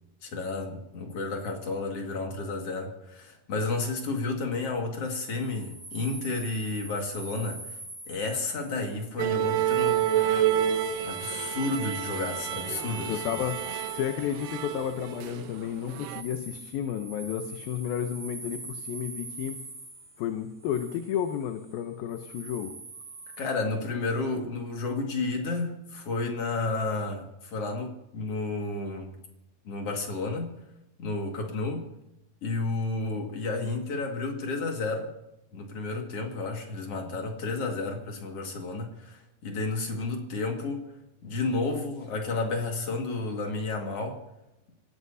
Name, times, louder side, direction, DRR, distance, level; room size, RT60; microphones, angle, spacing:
voice 1, 0.2-7.6 8.1-10.5 11.0-13.4 23.4-29.2 29.6-30.5 31.0-31.9 32.4-35.1 35.5-40.9 41.2-44.2, left 3 dB, 45° left, 2 dB, 2.7 m, -31 dB
sound 1, 5.0-23.4, right 3 dB, 35° right, 3.9 m, -44 dB
sound 2, 9.2-15.6 15.9-16.2, right 10 dB, 75° right, 1.7 m, -29 dB
voice 2, 13.1-13.6 13.9-19.6 20.2-22.7, left 9 dB, 80° left, 6 dB, 2.7 m, -32 dB
27.0 x 17.0 x 2.8 m, 0.90 s
omnidirectional pair, 4.2 m